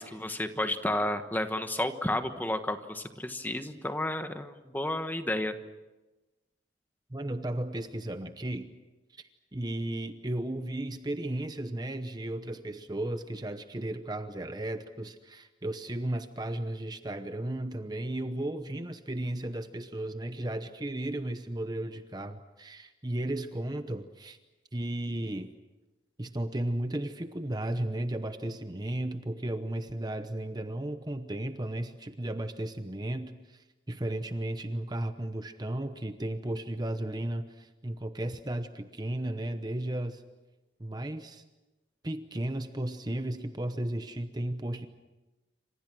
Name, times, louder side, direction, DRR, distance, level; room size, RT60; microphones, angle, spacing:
voice 1, 0.0-5.5, left 1 dB, 10° left, 8 dB, 1.3 m, -31 dB
voice 2, 7.1-8.7 9.1-24.4 24.7-25.5 26.2-40.2 40.8-41.4 42.0-44.9, right 1 dB, 20° right, 9 dB, 0.9 m, -34 dB
28.5 x 26.5 x 6.2 m, 1.1 s
head